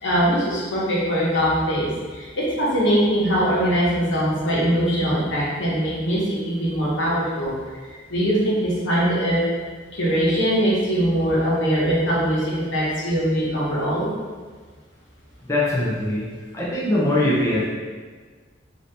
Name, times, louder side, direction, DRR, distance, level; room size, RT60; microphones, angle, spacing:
voice 1, 0.0-7.5 8.1-9.4 9.9-14.1, equal, 80° left, -7 dB, 1.0 m, -22 dB
voice 2, 15.5-16.2 16.5-17.7, left 1 dB, 15° left, -7 dB, 0.5 m, -21 dB
2.8 x 2.6 x 3.2 m, 1.5 s
head